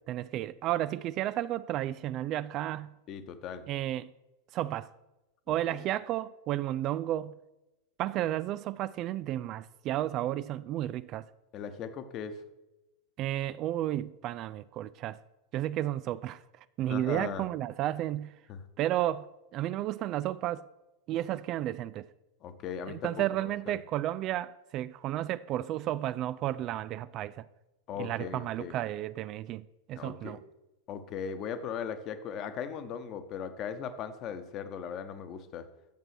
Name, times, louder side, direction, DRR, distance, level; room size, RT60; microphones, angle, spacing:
voice 1, 0.1-2.9 3.7-4.1 4.5-4.9 5.5-7.3 8.0-11.3 13.2-15.2 15.5-16.4 16.8-18.3 18.8-19.3 19.5-20.6 21.1-22.1 22.9-27.5 28.0-30.4, right 13 dB, 35° right, 0.3 m, -32 dB
voice 2, 3.1-3.6 5.5-5.9 11.5-12.4 16.9-17.5 18.5-18.6 22.4-23.1 23.4-23.8 27.9-28.8 30.0-30.4 30.9-35.7, left 7 dB, 35° left, 1.1 m, -38 dB
10.5 x 7.4 x 6.0 m
figure-of-eight pair, 90°, 0 cm